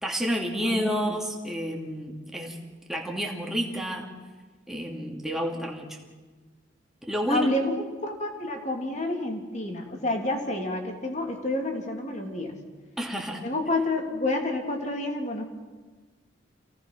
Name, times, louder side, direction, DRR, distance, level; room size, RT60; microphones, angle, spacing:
voice 1, 0.0-2.6 2.9-4.1 4.7-6.0 7.0-7.5 13.0-13.5, equal, ahead, -1 dB, 2.5 m, -30 dB
voice 2, 0.5-1.2 7.3-12.6 13.4-15.4, left 2 dB, 35° left, 2 dB, 3.0 m, -29 dB
28.0 x 18.0 x 6.1 m, 1.3 s
head